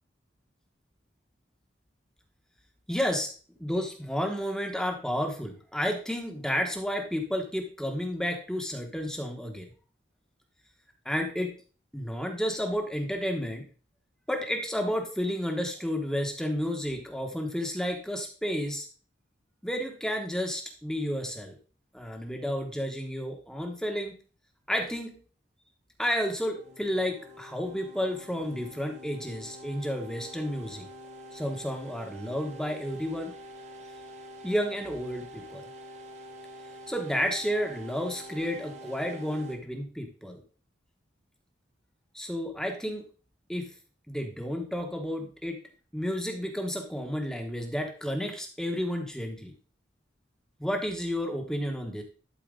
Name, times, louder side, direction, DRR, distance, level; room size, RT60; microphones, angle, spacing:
voice 1, 2.9-3.3 3.6-9.7 11.0-11.5 11.9-13.7 14.3-18.9 19.6-21.6 21.9-24.1 24.7-25.2 26.0-30.8 31.3-33.3 34.4-35.6 36.9-40.4 42.1-43.0 43.5-43.7 44.1-45.6 45.9-49.5 50.6-52.0, equal, 5° left, 3 dB, 1.1 m, -31 dB
sound 1, 26.5-39.6, equal, 35° right, 1.1 m, -46 dB
11.5 x 4.5 x 3.8 m, 0.39 s
head